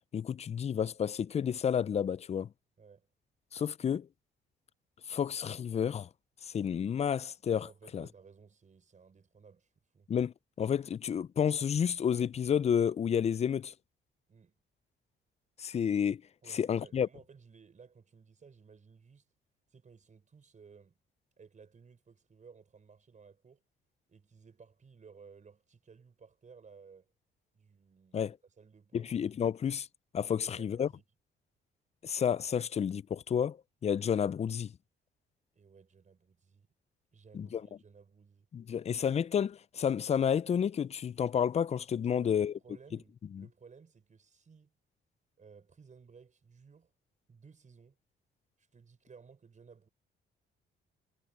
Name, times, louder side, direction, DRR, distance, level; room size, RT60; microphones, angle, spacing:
voice 1, 0.1-2.5 3.5-4.1 5.1-6.1 6.5-7.7 7.9-8.1 10.1-13.7 15.6-16.2 16.5-17.1 28.1-28.4 28.9-29.9 30.1-30.9 32.0-33.6 33.8-34.7 37.3-37.6 38.5-42.5 43.3-43.4, left 8 dB, 35° left, 0.4 m, -30 dB
voice 2, 2.8-3.1 7.6-10.1 14.3-14.6 16.4-19.3 19.7-21.0 21.4-23.6 24.1-27.1 27.5-29.2 30.4-31.0 35.5-36.7 37.1-38.5 42.1-44.7 45.4-46.9 47.3-48.0 48.6-49.9, right 5 dB, 40° right, 5.2 m, -57 dB
cardioid pair, 90°, 20 cm